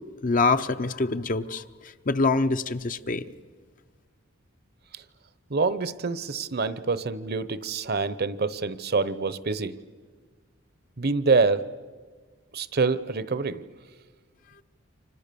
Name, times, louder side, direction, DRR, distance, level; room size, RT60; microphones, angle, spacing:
voice 1, 0.2-1.6 2.1-3.2, left 3 dB, 45° left, 0.8 m, -24 dB
voice 2, 5.5-9.7 11.0-11.7 12.5-13.6, right 4 dB, 50° right, 0.9 m, -26 dB
29.5 x 25.5 x 6.9 m
head